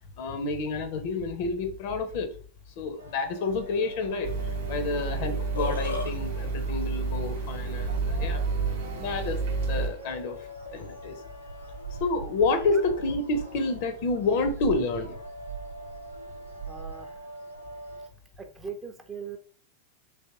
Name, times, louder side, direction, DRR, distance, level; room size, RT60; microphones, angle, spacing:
voice 1, 0.2-2.3 2.8-4.3 4.7-8.4 9.0-10.4 10.7-11.2 11.9-15.2, left 3 dB, 50° left, 0.6 m, -29 dB
sound 1, 3.0-18.1, right 4 dB, 90° right, 0.7 m, -41 dB
sound 2, 4.2-9.9, right 4 dB, 55° right, 0.8 m, -30 dB
Burping eructation, 5.3-6.1, left 4 dB, 85° left, 0.8 m, -31 dB
voice 2, 16.6-17.2 18.4-19.4, right 6 dB, 15° right, 0.5 m, -40 dB
3.4 x 2.8 x 2.8 m
figure-of-eight pair, 90°, 0 cm